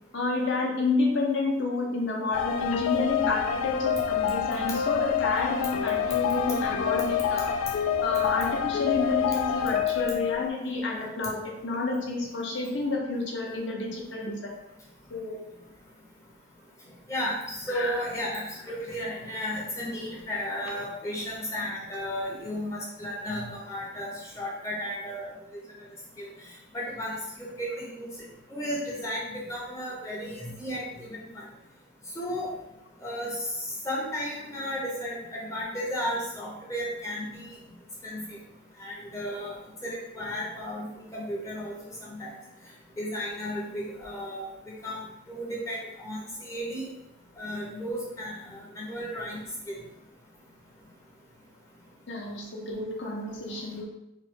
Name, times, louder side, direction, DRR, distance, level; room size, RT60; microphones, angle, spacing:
voice 1, 0.1-7.5 8.0-14.5 15.1-15.4 17.7-18.0 52.1-53.8, left 3 dB, 55° left, -1 dB, 0.7 m, -30 dB
sound 1, 2.3-10.5, left 8 dB, 80° left, 0.3 m, -27 dB
voice 2, 17.1-24.1 24.4-25.3 26.2-26.3 26.7-28.1 28.5-31.4 32.2-32.5 33.0-33.3 33.8-37.5 38.0-38.2 38.8-39.5 39.8-40.9 41.1-42.3 43.0-45.0 45.3-46.9 47.4-49.4 49.7-49.8, equal, 15° left, -4 dB, 0.6 m, -34 dB
3.1 x 2.2 x 4.2 m, 0.89 s
head